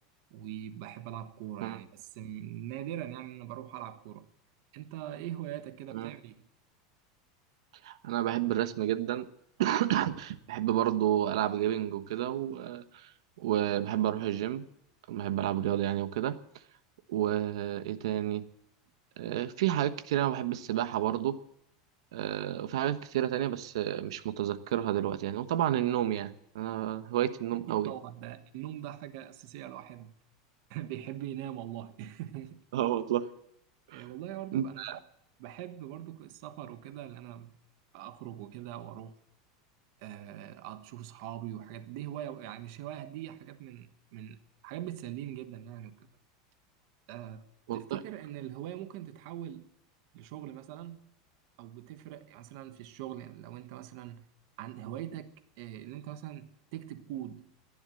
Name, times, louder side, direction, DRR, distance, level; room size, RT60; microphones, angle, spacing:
voice 1, 0.3-4.3 4.7-6.4 27.7-30.1 30.7-32.6 33.9-35.0 35.4-37.5 37.9-39.2 40.0-44.4 44.6-46.1 47.1-47.5 47.7-49.6 50.1-51.1 51.6-54.2 54.6-57.5, right 12 dB, 45° right, 1.2 m, -42 dB
voice 2, 7.8-9.3 9.6-13.1 13.4-14.6 15.1-16.3 17.1-18.4 19.2-21.3 22.1-27.9 32.7-33.3 33.9-34.1 34.5-35.0 47.7-48.0, right 12 dB, 75° right, 1.2 m, -30 dB
14.5 x 11.0 x 7.7 m
supercardioid pair, 180°, 3 cm